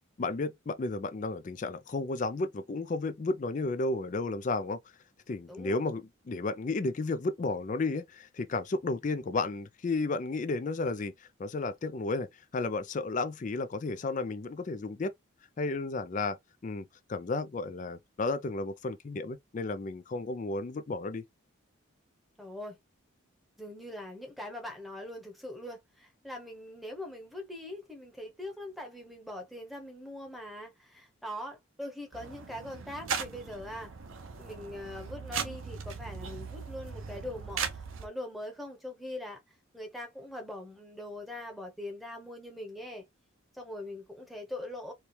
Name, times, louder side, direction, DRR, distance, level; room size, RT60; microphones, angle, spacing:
voice 1, 0.2-4.8 5.3-12.3 12.5-15.1 15.6-16.4 16.6-21.3, left 3 dB, 40° left, 0.4 m, -33 dB
voice 2, 5.5-5.8 22.4-22.8 23.6-33.9 34.4-39.4 39.7-43.0 43.6-44.9, left 1 dB, ahead, 1.0 m, -42 dB
sound 1, 32.1-38.1, right 6 dB, 80° right, 0.8 m, -38 dB
4.3 x 2.3 x 3.2 m
head